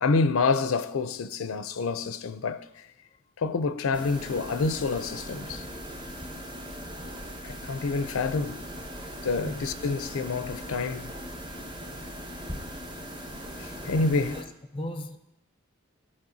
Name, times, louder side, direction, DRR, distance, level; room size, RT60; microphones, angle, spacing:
voice 1, 0.0-2.6 3.4-5.6 7.4-8.6 9.2-11.1 13.6-14.4, left 4 dB, 85° left, 0.5 m, -27 dB
sound 1, 3.9-14.4, equal, 20° right, 0.9 m, -39 dB
voice 2, 13.8-15.2, left 1 dB, 25° left, 0.5 m, -37 dB
15.0 x 5.3 x 2.7 m
head